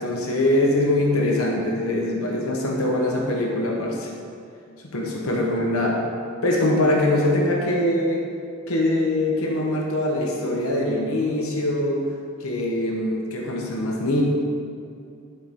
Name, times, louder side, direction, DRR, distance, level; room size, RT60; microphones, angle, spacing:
voice 1, 0.0-4.1 4.8-6.0 6.4-8.2 8.7-12.0 12.4-14.2, left 1 dB, 85° left, -1 dB, 0.9 m, -23 dB
10.5 x 4.3 x 3.6 m, 2.4 s
head